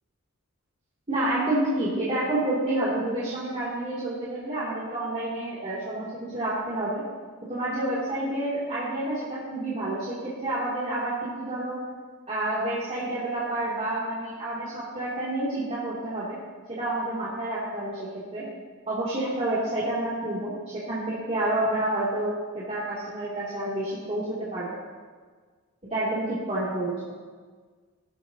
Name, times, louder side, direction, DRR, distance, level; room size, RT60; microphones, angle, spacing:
voice 1, 1.1-7.0 7.5-11.8 12.3-16.4 16.7-18.4 18.9-24.7 25.9-27.2, right 1 dB, 35° right, -10 dB, 2.8 m, -29 dB
17.0 x 12.5 x 2.9 m, 1.5 s
head